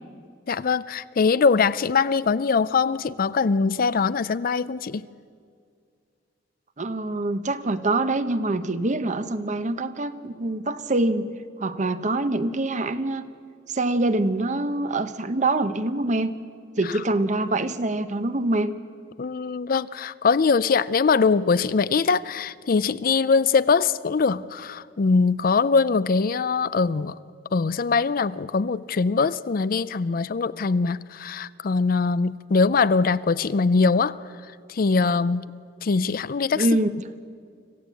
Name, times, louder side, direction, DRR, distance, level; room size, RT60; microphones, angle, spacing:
voice 1, 0.5-5.0 16.8-17.0 19.2-27.2 27.5-34.2 34.7-36.8, left 4 dB, 50° left, 17 dB, 0.5 m, -22 dB
voice 2, 6.8-11.3 11.6-13.3 13.7-16.3 16.8-18.7 36.5-36.9, right 2 dB, 40° right, 11 dB, 0.9 m, -25 dB
25.5 x 15.5 x 8.4 m, 2.2 s
head